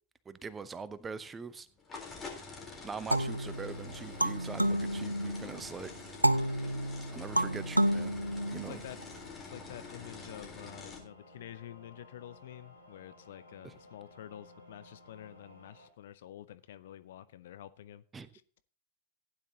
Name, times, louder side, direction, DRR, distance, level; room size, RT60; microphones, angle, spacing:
voice 1, 0.3-1.7 2.8-5.9 7.1-8.1 8.5-8.8 13.6-13.7 18.1-18.3, right 5 dB, 15° right, 0.8 m, -42 dB
sound 1, 1.0-11.0, left 4 dB, 20° left, 3.7 m, -47 dB
sound 2, 3.0-15.9, left 1 dB, 90° left, 2.7 m, -57 dB
sound 3, 3.1-5.6 6.2-9.0, right 1 dB, 85° right, 0.4 m, -30 dB
voice 2, 8.5-18.0 18.3-18.4, left 11 dB, 60° left, 0.7 m, -49 dB
15.5 x 10.0 x 2.8 m
figure-of-eight pair, 90°, 0 cm